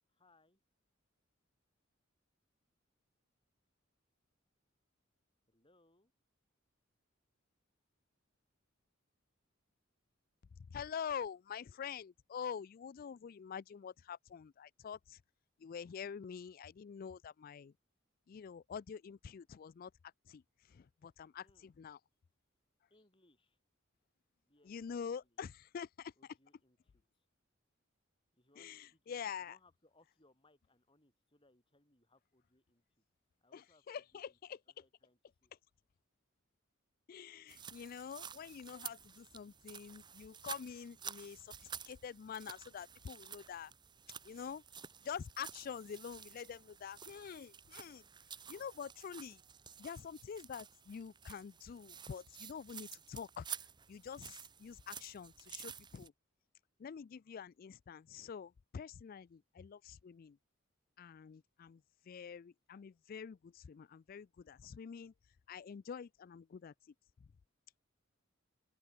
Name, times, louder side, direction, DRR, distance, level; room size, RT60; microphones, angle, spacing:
voice 1, 0.1-0.6 5.5-6.1 21.4-21.7 22.9-23.6 24.5-25.2 26.2-27.3 28.3-32.8 33.4-34.4 34.8-35.5, left 2 dB, 25° left, 5.4 m, -71 dB
voice 2, 10.6-15.2 15.6-17.7 18.3-19.9 20.3-20.4 20.7-22.0 24.6-26.1 28.6-29.6 33.5-34.6 37.1-43.7 44.2-44.6 45.0-48.0 48.5-49.4 49.8-53.5 53.9-56.1 56.8-60.4 61.0-65.1 65.5-66.7, left 7 dB, 45° left, 0.3 m, -46 dB
sound 1, 37.5-56.1, right 7 dB, 20° right, 1.0 m, -51 dB
open air
head